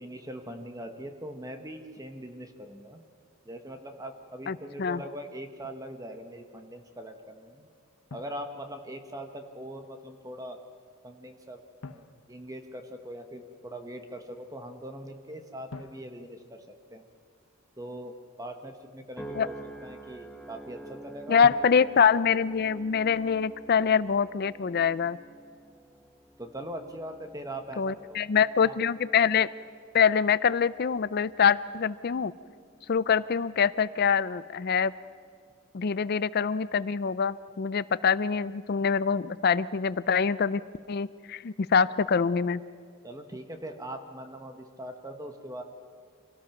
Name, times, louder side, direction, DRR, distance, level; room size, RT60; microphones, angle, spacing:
voice 1, 0.0-3.0 3.4-7.7 8.1-10.6 11.0-11.6 11.9-16.6 16.9-17.0 17.8-18.1 18.4-19.5 19.8-21.5 26.4-28.2 28.6-28.8 43.0-45.6, right 1 dB, 15° right, 6 dB, 1.2 m, -41 dB
voice 2, 4.5-5.0 19.4-19.5 21.3-25.2 27.8-29.5 29.9-32.3 32.9-34.9 35.7-40.6 40.9-42.6, left 6 dB, 45° left, 17 dB, 0.4 m, -25 dB
Drum, 8.1-9.2 11.8-13.2 15.7-17.4 21.4-22.4, left 4 dB, 70° left, 0.8 m, -48 dB
sound 1, 19.2-33.6 34.2-34.6, right 2 dB, 5° left, 1.0 m, -49 dB
26.0 x 18.0 x 5.9 m, 2.1 s
head